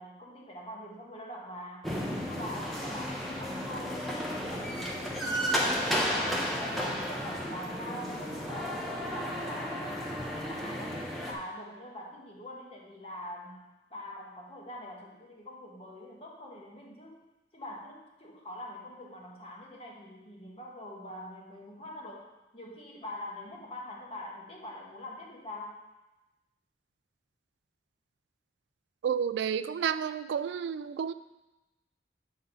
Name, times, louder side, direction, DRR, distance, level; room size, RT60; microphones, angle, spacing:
voice 1, 0.0-1.9 2.3-6.2 6.6-17.2 17.5-22.3 22.5-25.8, left 1 dB, 35° left, -2 dB, 1.3 m, -44 dB
sound 1, 1.8-11.3, equal, ahead, 0.8 m, -33 dB
voice 2, 29.0-31.1, right 7 dB, 85° right, 13 dB, 0.3 m, -31 dB
8.1 x 3.9 x 5.4 m, 1.0 s
head